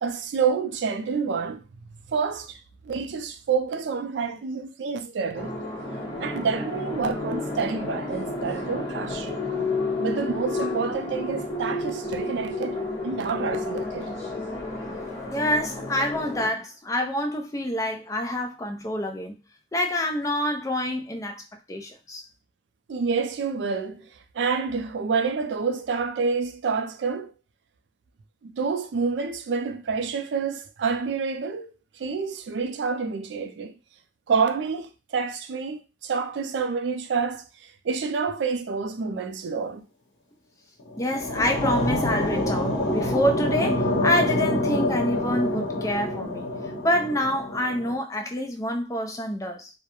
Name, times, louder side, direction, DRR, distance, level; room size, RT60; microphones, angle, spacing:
voice 1, 0.0-1.6 2.1-2.6 2.8-5.6 6.2-9.4 10.0-14.1 22.9-24.1 24.3-27.3 28.4-31.7 32.0-33.7 34.3-37.4 37.8-39.8, right 5 dB, 75° right, 0.4 m, -28 dB
sound 1, 5.3-16.5, left 2 dB, 40° left, 1.0 m, -31 dB
voice 2, 15.3-19.3 19.7-21.4 21.7-22.2 41.0-46.5 46.8-49.7, left 1 dB, 20° left, 0.4 m, -27 dB
sound 2, 40.8-48.0, left 1 dB, 90° left, 0.7 m, -26 dB
2.3 x 2.0 x 2.9 m
head